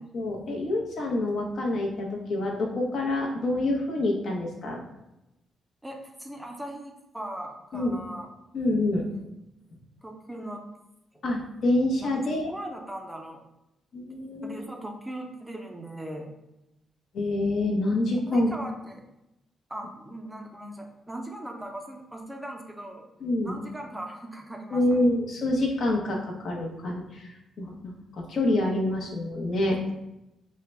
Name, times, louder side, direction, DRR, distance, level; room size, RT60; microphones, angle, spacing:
voice 1, 0.0-4.8 7.7-7.9 8.5-9.1 11.2-12.5 13.9-14.5 17.1-18.5 23.2-23.5 24.7-29.8, left 1 dB, 60° left, -1 dB, 0.8 m, -27 dB
voice 2, 5.8-8.3 10.0-10.7 11.1-11.2 12.0-13.4 14.4-16.3 18.3-19.0 19.7-23.0 23.4-25.0, right 1 dB, 10° right, 2 dB, 0.5 m, -39 dB
3.7 x 2.2 x 4.3 m, 0.89 s
cardioid pair, 110°, 0 cm